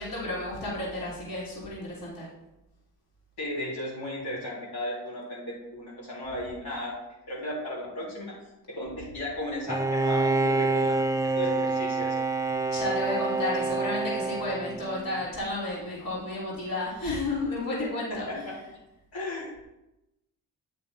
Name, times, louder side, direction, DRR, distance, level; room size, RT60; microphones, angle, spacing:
voice 1, 0.0-2.3 12.7-18.7, left 2 dB, 60° left, -6 dB, 3.1 m, -32 dB
voice 2, 3.4-6.9 7.3-8.3 8.7-11.0 11.3-12.2 18.1-18.5 19.1-19.5, left 1 dB, 80° left, -7 dB, 3.2 m, -35 dB
Bowed string instrument, 9.7-15.3, right 3 dB, 10° right, 0.4 m, -27 dB
8.5 x 6.5 x 3.4 m, 0.93 s
cardioid pair, 85°, 38 cm